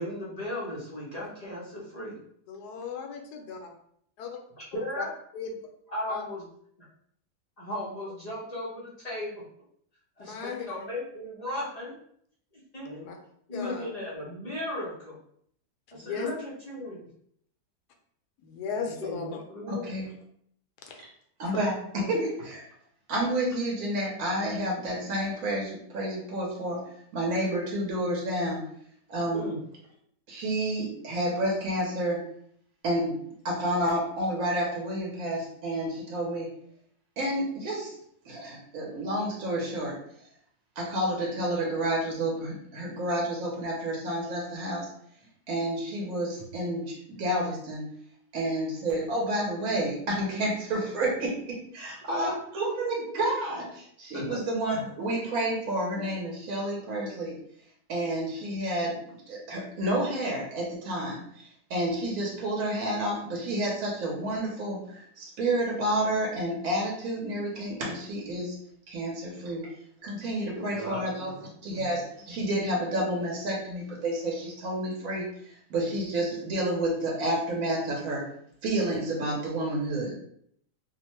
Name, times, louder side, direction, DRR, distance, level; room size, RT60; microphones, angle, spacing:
voice 1, 0.0-2.1 4.6-5.1 5.9-6.4 7.6-9.4 10.2-11.9 12.5-13.0 13.5-15.2 15.9-17.0 18.8-19.9 29.3-29.6 52.1-52.3 54.1-54.3 70.6-71.7, left 1 dB, 45° left, 0.5 m, -36 dB
voice 2, 2.5-3.7 4.2-4.3 4.7-5.0 5.3-5.5 6.1-6.2 10.2-10.7 12.8-13.2 13.5-13.9 15.9-16.3 18.4-19.4 20.9-21.0 21.4-21.6 22.0-22.1, left 6 dB, 75° left, 1.1 m, -36 dB
voice 3, 19.7-20.1 21.4-22.6 23.1-26.8 27.1-28.6 29.1-29.5 30.3-32.2 32.8-33.1 33.4-36.5 37.2-37.9 38.2-39.9 40.8-44.9 45.5-47.9 48.3-52.3 52.5-57.3 57.9-68.6 68.9-69.6 70.0-71.3 71.6-78.2 78.6-80.1, right 1 dB, 65° right, 1.1 m, -30 dB
2.9 x 2.1 x 3.0 m
omnidirectional pair, 1.7 m